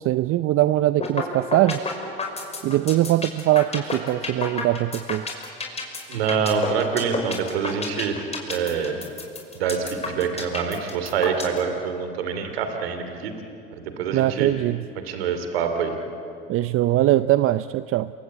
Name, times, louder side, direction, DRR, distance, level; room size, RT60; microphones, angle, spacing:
voice 1, 0.0-1.8 2.6-5.3 14.1-14.8 16.5-18.1, right 15 dB, 45° right, 14 dB, 0.6 m, -21 dB
sound 1, 1.0-1.2 1.5-11.6, left 4 dB, 20° left, 5.6 m, -29 dB
voice 2, 6.1-8.2 8.5-9.0 9.5-13.3 13.8-14.5 15.0-15.9, right 6 dB, 85° right, 7 dB, 2.8 m, -26 dB
28.0 x 23.0 x 8.7 m, 2.7 s
hypercardioid pair, 80°, 30 cm